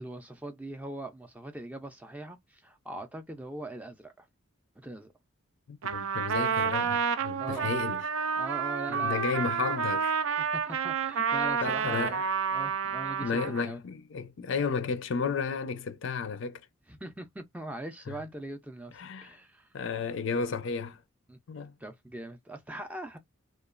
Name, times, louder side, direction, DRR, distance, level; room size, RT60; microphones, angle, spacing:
voice 1, 0.0-4.3 4.8-5.1 7.4-7.7 8.4-9.2 10.4-12.2 12.5-13.8 16.9-19.7 21.3-21.4 21.8-23.2, right 1 dB, 5° right, 0.3 m, -41 dB
voice 2, 5.7-8.0 8.9-10.2 11.6-12.3 13.2-16.6 18.1-18.2 18.9-19.4 19.7-21.0 21.5-21.8, left 5 dB, 60° left, 0.4 m, -33 dB
Trumpet, 5.8-13.7, right 6 dB, 80° right, 0.4 m, -30 dB
2.9 x 2.3 x 2.3 m
head